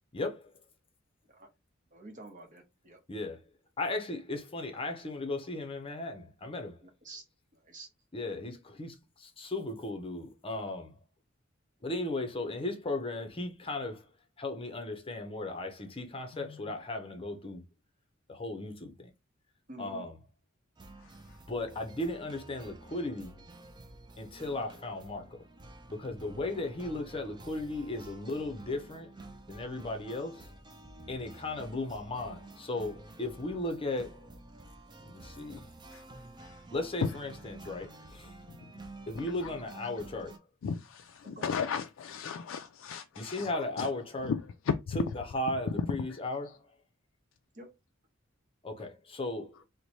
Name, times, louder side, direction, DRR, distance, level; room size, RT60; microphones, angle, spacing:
voice 1, 0.1-0.5 3.1-3.4 3.8-6.8 8.1-10.9 11.8-14.1 14.4-17.6 18.3-19.1 19.8-20.2 21.5-23.4 24.2-25.4 25.9-29.1 29.5-30.5 31.1-34.3 35.0-35.7 36.7-38.4 39.1-40.4 43.2-44.3 44.9-46.6 48.6-49.5, left 2 dB, 25° left, 0.6 m, -36 dB
voice 2, 1.9-3.0 6.8-7.2 7.5-7.9 19.7-20.0 41.2-41.5 47.5-47.7, right 1 dB, 40° right, 1.0 m, -48 dB
sound 1, 20.8-40.4, right 2 dB, 20° right, 0.4 m, -50 dB
voice 3, 21.0-21.4 35.9-36.0 36.4-36.6 37.0-37.1 38.5-38.6 39.1-39.5 40.6-43.9 44.2-45.0 46.1-46.2, left 6 dB, 70° left, 0.3 m, -35 dB
3.1 x 2.1 x 4.0 m
head